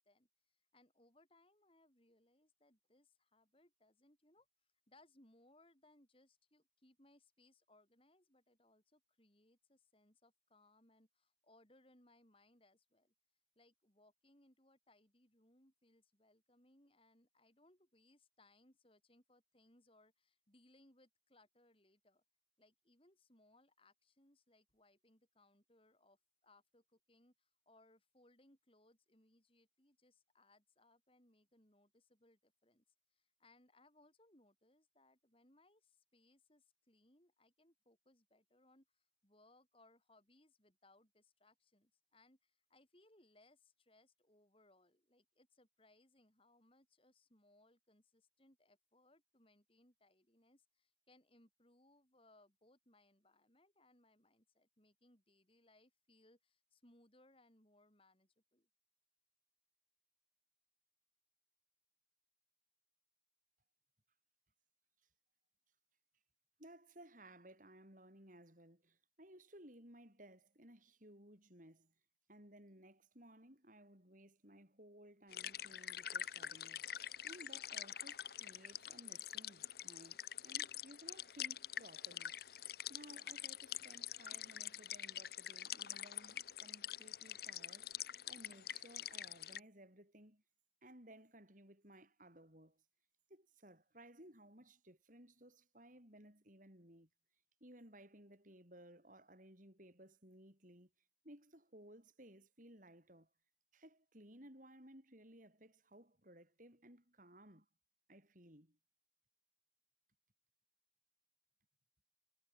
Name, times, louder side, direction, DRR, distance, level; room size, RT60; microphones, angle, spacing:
voice 1, 0.0-4.5 4.9-13.1 13.6-22.2 22.6-32.8 33.1-58.7, left 2 dB, 30° left, 5.4 m, -70 dB
voice 2, 66.6-71.9 72.3-76.9 77.2-80.2 80.4-82.3 82.9-90.4 90.8-92.8 93.3-97.1 97.6-100.9 101.2-103.3 103.7-107.7 108.1-108.8, right 1 dB, 45° right, 7.9 m, -60 dB
sound 1, 75.3-89.6, left 10 dB, 55° left, 1.1 m, -46 dB
head